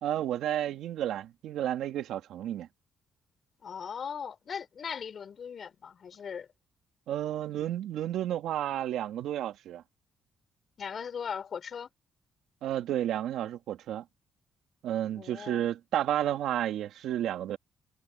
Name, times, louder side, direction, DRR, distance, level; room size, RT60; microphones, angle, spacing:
voice 1, 0.0-2.7 7.1-9.8 12.6-14.0 14.8-17.6, right 11 dB, 80° right, 2.1 m, -31 dB
voice 2, 3.6-6.5 10.8-11.9 15.1-15.7, left 7 dB, 50° left, 5.2 m, -39 dB
cardioid pair, 90°, 0 cm